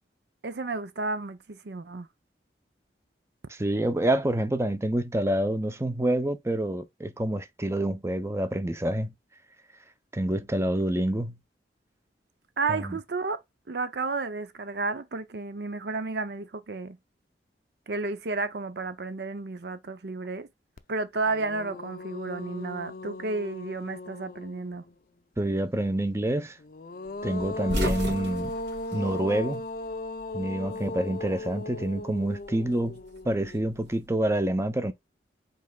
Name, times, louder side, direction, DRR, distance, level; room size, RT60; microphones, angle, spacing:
voice 1, 0.4-2.1 12.6-13.4 13.7-17.0 17.9-20.5 20.9-24.8, right 3 dB, 65° right, 0.6 m, -32 dB
voice 2, 3.5-9.1 10.1-11.4 12.7-13.0 25.4-26.6 27.2-28.6 28.9-29.6 30.3-33.0 33.2-34.9, right 1 dB, 15° right, 0.6 m, -27 dB
sound 1, 20.8-20.9 21.3-24.9 26.6-33.8, left 2 dB, 50° left, 0.5 m, -37 dB
sound 2, 27.4-29.9 30.2-31.3 32.5-33.9, equal, 80° right, 3.5 m, -34 dB
5.3 x 4.0 x 2.3 m
head